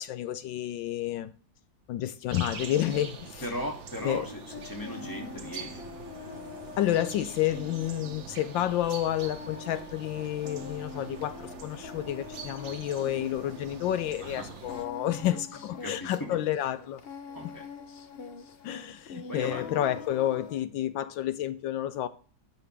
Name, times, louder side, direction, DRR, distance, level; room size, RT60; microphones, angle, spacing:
voice 1, 0.0-1.3 1.9-3.4 4.0-4.3 6.8-17.0 18.6-22.1, left 12 dB, 80° left, 1.3 m, -30 dB
sound 1, 2.3-14.9, right 5 dB, 80° right, 2.0 m, -44 dB
voice 2, 3.4-5.8 14.2-14.6 15.8-16.4 17.3-17.7 19.3-20.0, equal, 10° left, 2.3 m, -37 dB
Singing, 4.0-20.6, left 5 dB, 60° left, 0.6 m, -45 dB
12.5 x 9.1 x 3.4 m
omnidirectional pair, 2.0 m